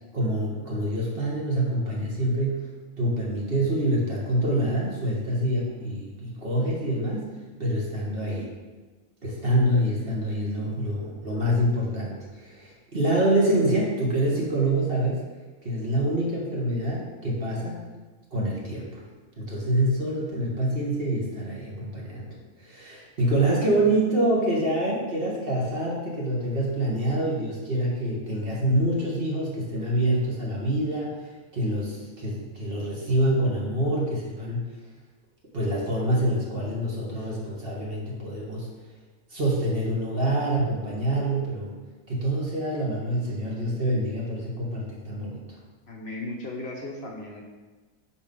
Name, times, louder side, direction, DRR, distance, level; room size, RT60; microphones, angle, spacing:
voice 1, 0.1-2.7 3.0-8.5 9.2-15.3 15.6-17.8 18.3-19.0 19.4-34.7 35.5-38.7 39.3-41.7 42.1-45.4, right 1 dB, 45° right, -4 dB, 1.6 m, -26 dB
voice 2, 45.9-47.5, left 2 dB, 55° left, -1 dB, 1.0 m, -36 dB
5.6 x 4.7 x 5.3 m, 1.3 s
omnidirectional pair, 1.4 m